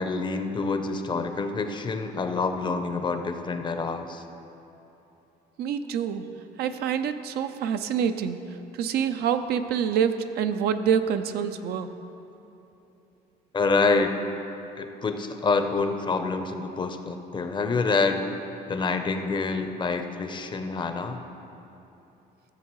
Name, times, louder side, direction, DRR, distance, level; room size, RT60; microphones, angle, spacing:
voice 1, 0.0-4.2 13.5-14.2 14.8-18.3 18.7-21.2, left 4 dB, 30° left, 7 dB, 0.6 m, -27 dB
voice 2, 5.6-6.3 6.6-11.9, right 8 dB, 70° right, 9 dB, 0.5 m, -26 dB
14.5 x 7.2 x 3.1 m, 2.9 s
cardioid pair, 110°, 17 cm